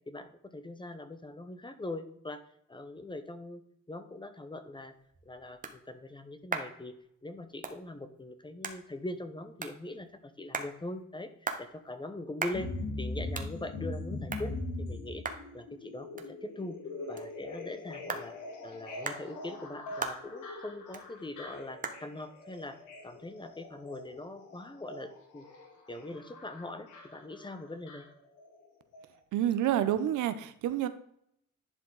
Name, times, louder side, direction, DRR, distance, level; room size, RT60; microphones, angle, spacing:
voice 1, 0.1-2.4 2.7-3.6 3.9-4.9 5.2-7.0 7.2-11.3 11.6-12.7 13.0-14.5 14.8-15.2 15.5-16.8 17.1-18.3 18.6-22.8 23.0-25.5 25.9-28.0, left 2 dB, 15° left, 10 dB, 0.9 m, -42 dB
sound 1, 4.7-24.0, right 4 dB, 25° right, 1.1 m, -44 dB
sound 2, 12.5-28.7 28.9-29.0, left 2 dB, 85° left, 2.1 m, -42 dB
voice 2, 29.3-30.9, right 11 dB, 80° right, 12 dB, 0.7 m, -28 dB
11.0 x 4.6 x 3.9 m, 0.70 s
cardioid pair, 90°, 30 cm